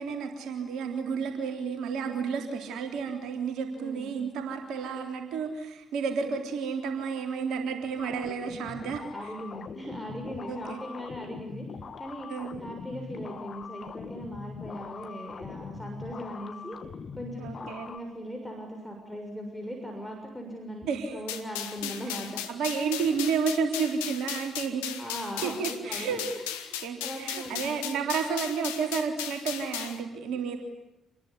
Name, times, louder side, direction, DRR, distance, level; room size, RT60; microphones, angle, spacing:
voice 1, 0.0-9.3 10.4-10.8 12.3-12.5 17.4-17.9 20.9-21.1 21.8-22.2 22.5-25.1 25.4-26.2 26.8-30.6, right 6 dB, 60° right, 4 dB, 3.7 m, -31 dB
voice 2, 3.7-4.2 9.1-11.6 12.0-12.3 12.6-16.8 17.2-22.4 25.0-26.2 26.6-27.7, equal, 5° left, 2 dB, 6.7 m, -39 dB
sound 1, 8.0-18.0, left 5 dB, 45° left, 2.4 m, -42 dB
sound 2, 21.3-30.0, left 10 dB, 75° left, 1.7 m, -36 dB
27.5 x 21.5 x 9.8 m, 0.90 s
figure-of-eight pair, 45°, 0 cm